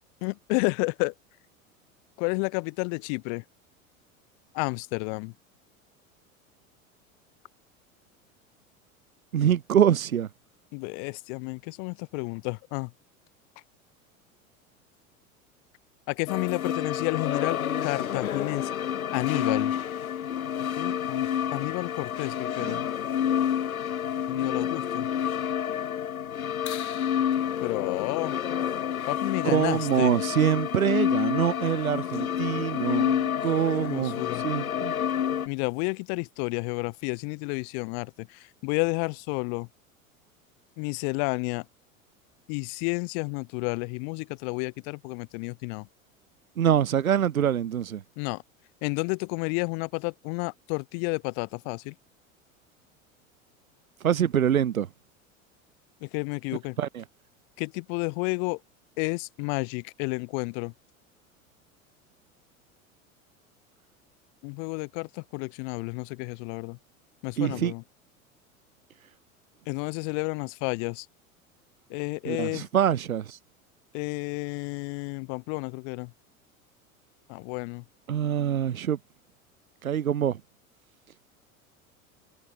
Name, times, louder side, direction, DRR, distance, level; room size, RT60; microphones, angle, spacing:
voice 1, 0.2-1.1 2.2-3.4 4.5-5.3 10.7-12.9 16.1-18.7 19.1-19.7 20.7-22.8 24.3-25.1 27.6-28.4 29.1-30.2 33.9-34.4 35.5-39.7 40.8-41.6 42.5-45.9 48.2-48.4 48.8-51.9 56.0-56.8 57.6-58.6 59.0-60.7 64.4-66.8 67.2-67.8 69.7-71.1 71.9-72.7 73.9-76.1 77.3-77.8, left 40 dB or more, 45° left, 1.0 m, -31 dB
voice 2, 9.3-10.3 22.6-22.8 29.4-34.9 46.6-48.0 54.0-54.9 56.8-57.0 67.4-67.7 72.2-73.4 78.1-79.0 79.8-80.4, right 9 dB, 85° right, 0.6 m, -25 dB
sound 1, 16.3-35.5, left 9 dB, 90° left, 0.5 m, -29 dB
figure-of-eight pair, 80°, 41 cm